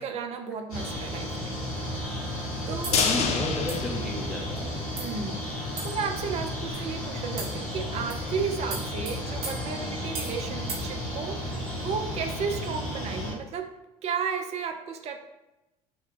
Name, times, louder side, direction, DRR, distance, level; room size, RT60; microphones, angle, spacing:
voice 1, 0.0-1.6 2.1-2.2 2.7-3.0 4.9-13.7 14.0-15.2, right 6 dB, 35° right, 5 dB, 0.5 m, -33 dB
sound 1, 0.7-13.3, left 1 dB, 75° left, 1.4 m, -33 dB
voice 2, 2.8-4.9, left 1 dB, ahead, -1 dB, 0.7 m, -33 dB
sound 2, 2.8-3.1 3.7-3.9 4.6-4.7 5.0-5.2 5.8-6.1 6.7-6.9 7.4-7.7 8.1-8.3 8.7-10.4 10.7-10.9, right 3 dB, 55° right, 0.9 m, -38 dB
sound 3, 2.9-5.1 5.4-5.5 5.8-5.9, left 5 dB, 35° left, 0.4 m, -28 dB
2.9 x 2.2 x 3.7 m, 0.97 s
figure-of-eight pair, 65°, 19 cm